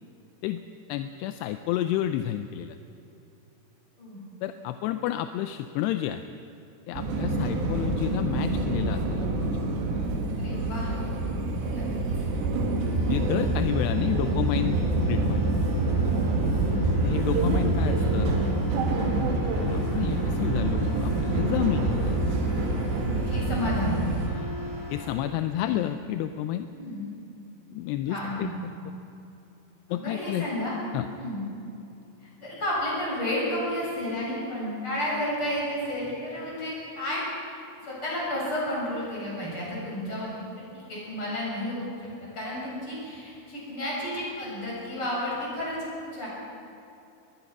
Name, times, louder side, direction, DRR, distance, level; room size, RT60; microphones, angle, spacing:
voice 1, 0.9-2.8 4.4-6.3 6.9-9.3 13.1-14.8 15.1-15.5 17.0-18.4 19.6-22.2 24.3-24.5 24.9-26.7 27.7-28.5 28.9-29.0 29.9-30.5 30.9-31.1, left 12 dB, 85° left, 9 dB, 2.7 m, -30 dB
sound 1, 6.9-24.3, right 2 dB, 90° right, 4.4 m, -26 dB
voice 2, 7.1-7.5 10.4-10.9 11.7-11.9 16.5-16.9 18.9-19.2 23.2-24.0 25.5-25.9 26.7-27.1 28.1-28.5 29.9-30.7 31.1-31.5 32.4-37.2 37.8-40.3 40.7-41.8 42.2-46.3, left 1 dB, 30° left, -5 dB, 7.9 m, -32 dB
sound 2, 12.7-25.1, left 1 dB, 65° left, 7.1 m, -40 dB
21.5 x 21.5 x 6.0 m, 2.8 s
omnidirectional pair, 4.9 m